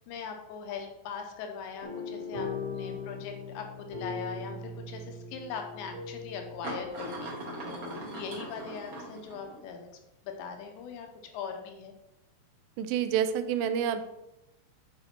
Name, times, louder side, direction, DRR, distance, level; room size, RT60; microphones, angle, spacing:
voice 1, 0.1-2.5 2.7-9.9 10.2-11.1 11.3-11.9, left 6 dB, 75° left, 4 dB, 2.9 m, -40 dB
sound 1, 1.8-7.3, left 4 dB, 25° right, 1.6 m, -39 dB
sound 2, 2.1-2.2 2.7-3.0 4.2-4.3 5.6-5.7 6.6-9.7, right 1 dB, 50° right, 1.8 m, -40 dB
voice 2, 12.8-14.1, right 8 dB, 85° right, 10 dB, 3.1 m, -28 dB
9.8 x 4.8 x 4.4 m, 0.89 s
omnidirectional pair, 5.7 m